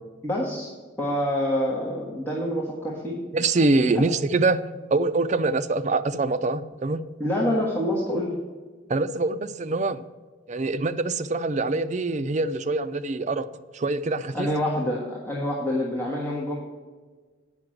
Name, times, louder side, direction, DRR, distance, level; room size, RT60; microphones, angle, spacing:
voice 1, 0.2-0.7 1.0-3.2 3.9-4.1 7.2-8.3 14.3-16.6, left 1 dB, 10° left, -5 dB, 1.4 m, -26 dB
voice 2, 3.3-4.6 4.9-7.0 8.9-10.0 10.5-13.5 13.7-14.5, right 3 dB, 40° right, 9 dB, 0.4 m, -24 dB
9.2 x 5.8 x 7.6 m, 1.4 s
head